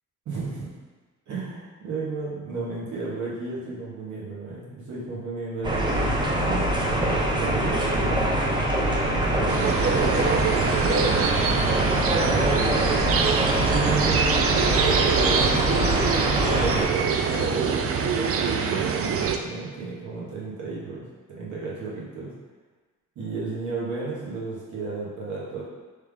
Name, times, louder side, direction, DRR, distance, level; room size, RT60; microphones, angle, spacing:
voice 1, 0.2-0.7 1.3-10.2 12.2-13.1 13.6-22.3 23.1-25.6, right 3 dB, 70° right, -6 dB, 1.4 m, -33 dB
sound 1, 5.6-16.8, right 1 dB, 15° right, 0.6 m, -24 dB
sound 2, 9.5-19.4, right 6 dB, 50° right, 0.4 m, -24 dB
3.5 x 3.2 x 3.5 m, 1.3 s
cardioid pair, 90°, 30 cm